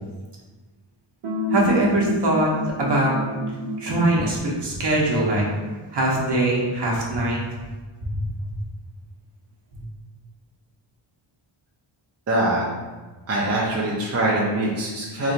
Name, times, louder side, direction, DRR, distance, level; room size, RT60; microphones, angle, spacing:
sound 1, 1.2-4.4, right 1 dB, 85° right, 0.8 m, -28 dB
voice 1, 1.5-2.5 2.8-3.2 3.8-5.4 5.9-7.4 9.7-9.8, right 1 dB, 55° right, -3 dB, 0.9 m, -22 dB
voice 2, 12.3-12.6 13.3-15.3, right 1 dB, 30° right, -5 dB, 0.6 m, -23 dB
3.2 x 2.7 x 4.0 m, 1.3 s
wide cardioid pair, 180°, 50 cm